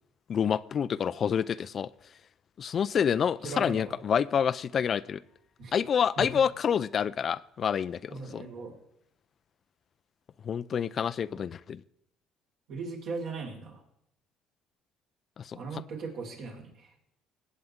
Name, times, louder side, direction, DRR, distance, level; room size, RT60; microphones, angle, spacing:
voice 1, 0.3-1.9 2.6-5.2 5.7-8.5 10.4-11.8 15.4-15.8, left 7 dB, 45° left, 17 dB, 0.4 m, -28 dB
voice 2, 3.4-4.0 5.6-5.7 6.2-6.3 8.1-8.7 11.3-11.4 12.7-13.8 15.5-16.7, right 3 dB, 65° right, -1 dB, 5.0 m, -38 dB
19.5 x 8.5 x 3.7 m, 0.76 s
supercardioid pair, 90°, 0 cm